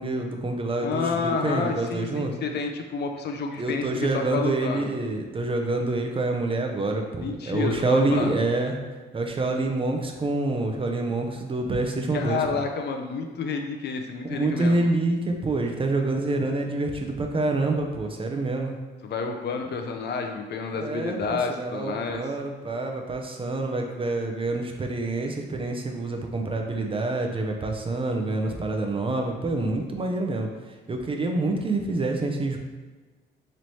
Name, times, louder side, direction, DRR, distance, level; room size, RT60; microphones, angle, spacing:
voice 1, 0.0-2.3 3.6-8.8 9.1-12.4 14.2-18.7 20.8-30.5 30.9-32.6, right 2 dB, 25° right, 3 dB, 0.5 m, -27 dB
voice 2, 0.8-4.9 7.2-8.4 12.1-14.8 19.0-22.2, left 5 dB, 60° left, 4 dB, 0.5 m, -29 dB
3.1 x 3.0 x 4.0 m, 1.3 s
cardioid pair, 90°, 20 cm